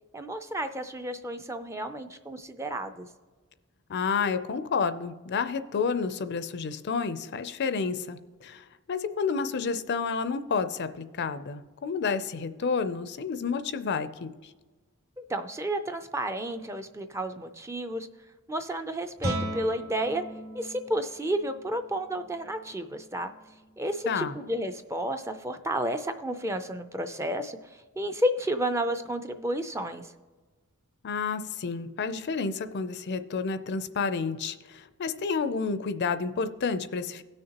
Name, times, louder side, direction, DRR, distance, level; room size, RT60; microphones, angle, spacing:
voice 1, 0.1-3.1 15.2-18.1 18.5-20.2 20.5-23.3 23.8-30.1, right 1 dB, 10° right, 8 dB, 0.4 m, -31 dB
voice 2, 3.9-14.3 24.1-24.4 31.0-37.2, left 5 dB, 50° left, 11 dB, 0.4 m, -30 dB
Guitar, 19.2-24.7, right 1 dB, 65° right, 2.3 m, -39 dB
17.5 x 6.5 x 2.9 m, 1.3 s
head